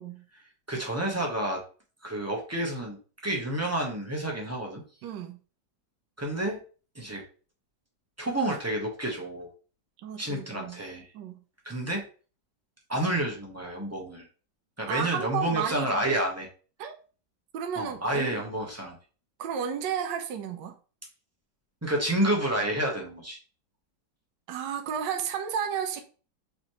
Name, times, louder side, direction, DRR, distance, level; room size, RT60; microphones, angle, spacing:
voice 1, 0.3-1.6 2.0-4.8 6.2-6.6 6.9-7.2 8.2-9.5 10.2-11.1 11.6-12.0 12.9-14.3 14.8-16.5 17.7-19.0 21.8-23.4, right 1 dB, 15° right, 0.6 m, -29 dB
voice 2, 5.0-5.4 10.0-10.8 11.1-11.4 14.9-16.2 16.8-16.9 17.5-18.4 19.4-20.8 24.5-26.0, right 8 dB, 80° right, 1.3 m, -32 dB
5.0 x 3.3 x 3.0 m
omnidirectional pair, 1.9 m